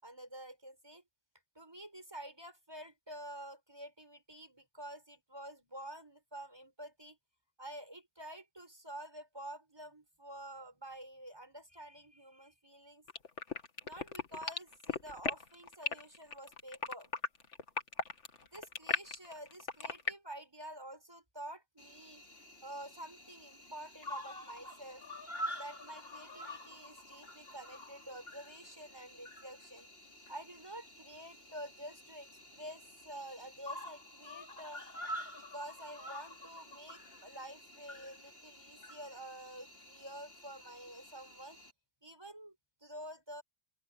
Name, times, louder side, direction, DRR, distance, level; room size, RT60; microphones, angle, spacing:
voice 1, 0.0-1.0 1.5-7.2 7.6-13.1 13.8-17.1 18.4-22.2 22.6-25.0 25.5-29.9 30.3-34.8 35.3-41.7 42.0-42.5 42.8-43.4, right 1 dB, 20° right, 6.8 m, -49 dB
sound 1, 13.1-20.1, left 4 dB, 65° left, 2.0 m, -36 dB
Cricket, 21.8-41.7, equal, 50° left, 3.6 m, -48 dB
open air
omnidirectional pair, 1.3 m